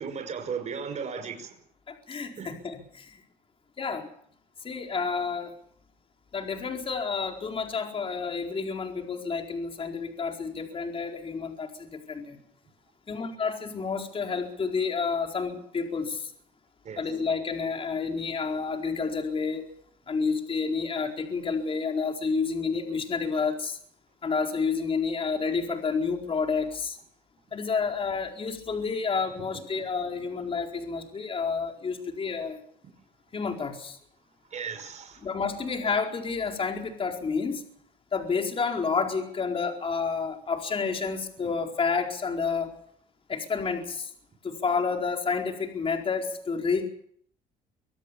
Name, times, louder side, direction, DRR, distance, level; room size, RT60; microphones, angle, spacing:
voice 1, 0.0-1.5 2.4-2.5 16.8-17.0 34.5-35.2, right 6 dB, 45° right, 6 dB, 5.5 m, -35 dB
voice 2, 1.9-3.1 3.8-4.1 4.6-5.5 6.3-12.4 13.1-16.3 17.0-19.7 20.1-23.8 24.2-27.0 27.5-32.6 33.3-34.0 35.2-37.6 38.1-42.8 43.3-44.1 44.4-46.9, left 5 dB, 35° left, 3 dB, 4.5 m, -30 dB
25.0 x 17.0 x 7.0 m, 0.63 s
cardioid pair, 110°, 17 cm